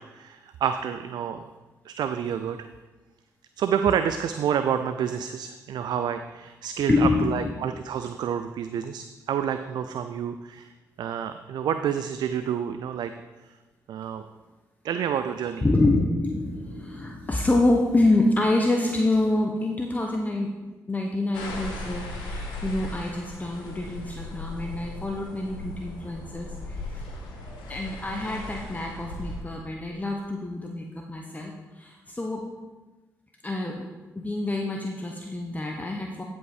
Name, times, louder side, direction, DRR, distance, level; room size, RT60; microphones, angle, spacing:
voice 1, 0.0-1.4 1.8-2.7 3.6-10.7 11.0-13.1 13.9-14.3 14.8-15.7, right 8 dB, 70° right, 9 dB, 0.4 m, -28 dB
voice 2, 6.9-7.7 15.6-20.5 20.9-27.0 27.7-32.4 33.4-33.8 34.1-36.2, left 2 dB, 20° left, 1 dB, 1.1 m, -26 dB
sound 1, 21.3-29.4, left 2 dB, 85° left, 2.0 m, -37 dB
11.0 x 5.4 x 4.9 m, 1.2 s
supercardioid pair, 50°, 8 cm